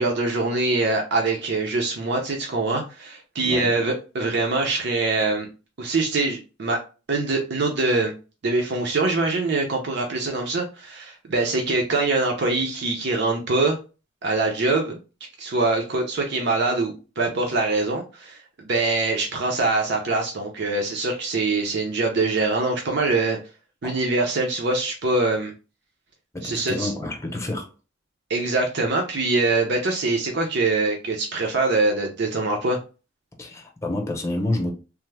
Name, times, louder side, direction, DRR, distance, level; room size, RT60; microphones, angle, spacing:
voice 1, 0.0-5.5 5.8-6.8 7.1-8.1 8.4-13.8 14.2-15.0 15.4-23.4 23.8-25.5 26.4-26.9 28.3-32.8, right 3 dB, 60° right, 0.6 m, -23 dB
voice 2, 3.4-3.7 23.8-24.0 26.3-27.7 33.4-34.7, left 1 dB, 15° left, 0.7 m, -28 dB
3.3 x 2.0 x 3.2 m
head